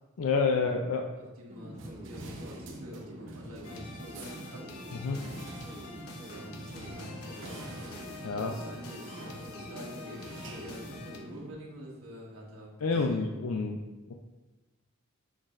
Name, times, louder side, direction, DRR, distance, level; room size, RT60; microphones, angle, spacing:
voice 1, 0.2-1.1 4.9-5.2 8.2-8.5 12.8-13.8 14.1-14.2, left 4 dB, 70° left, 3 dB, 0.4 m, -28 dB
voice 2, 1.2-4.7 6.2-7.6 8.3-13.2, equal, 75° right, -3 dB, 1.4 m, -47 dB
sound 1, 1.5-11.5, right 1 dB, 30° right, 0.7 m, -45 dB
sound 2, 1.7-11.6, right 2 dB, 60° right, 0.8 m, -49 dB
sound 3, 3.6-11.2, left 3 dB, 90° left, 0.8 m, -47 dB
6.3 x 6.0 x 2.5 m, 1.2 s
head